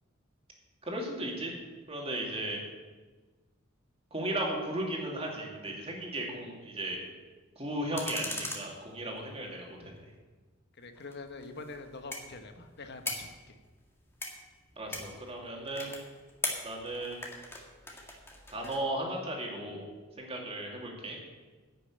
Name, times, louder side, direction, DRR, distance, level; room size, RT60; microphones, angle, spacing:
voice 1, 0.8-1.5 1.9-2.6 4.1-7.0 7.6-9.9 14.8-16.0 16.6-17.3 18.5-19.8 20.2-21.2, right 1 dB, 30° right, -1 dB, 2.6 m, -35 dB
sound 1, 8.0-9.5 11.0-18.8, left 2 dB, 10° left, 1.8 m, -41 dB
voice 2, 10.8-13.6, left 3 dB, 55° left, 7 dB, 1.1 m, -45 dB
10.5 x 6.7 x 8.6 m, 1.3 s
head